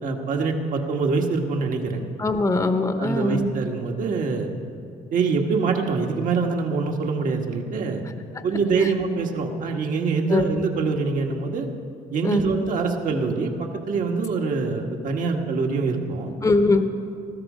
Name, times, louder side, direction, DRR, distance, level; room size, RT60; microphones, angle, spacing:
voice 1, 0.0-2.0 3.0-4.5 5.1-8.0 8.4-11.7 12.1-16.3, right 4 dB, 65° right, 2 dB, 1.7 m, -24 dB
voice 2, 2.2-3.5 8.4-8.5 10.3-10.4 12.2-12.4 16.4-16.8, left 2 dB, 20° left, 7 dB, 0.9 m, -21 dB
19.5 x 13.5 x 5.1 m, 2.5 s
cardioid pair, 90°, 15 cm